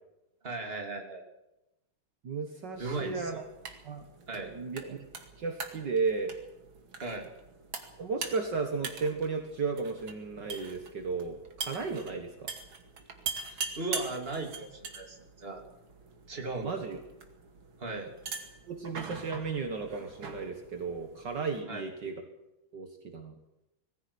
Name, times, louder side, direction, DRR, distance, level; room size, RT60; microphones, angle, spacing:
voice 1, 0.4-1.2 2.8-3.4 4.3-4.5 7.0-7.3 13.4-15.6 16.3-16.7 17.8-18.1 21.7-21.8, right 3 dB, 25° right, 2 dB, 3.3 m, -37 dB
voice 2, 2.2-3.4 3.8-4.1 4.3-5.1 5.4-6.3 8.0-12.5 16.6-17.0 18.7-22.2 22.7-23.3, right 4 dB, 60° right, 5 dB, 2.3 m, -34 dB
sound 1, 2.7-21.6, right 5 dB, 75° right, 3.0 m, -43 dB
21.5 x 15.0 x 8.6 m, 0.93 s
omnidirectional pair, 2.2 m